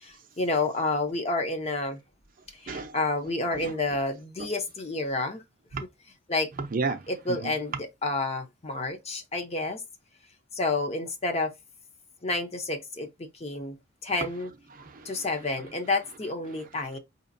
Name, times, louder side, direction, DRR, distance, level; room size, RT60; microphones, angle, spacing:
voice 1, 0.0-2.0 2.6-5.4 6.3-6.5 7.1-7.7 8.0-9.8 10.5-11.5 12.2-13.8 14.0-14.5 15.1-17.0, left 2 dB, 30° left, 0.7 m, -29 dB
voice 2, 2.7-3.7 4.4-4.5 5.7-5.8 6.6-7.5 14.7-15.5 16.5-17.0, right 4 dB, 45° right, 0.6 m, -35 dB
4.9 x 2.8 x 2.6 m
head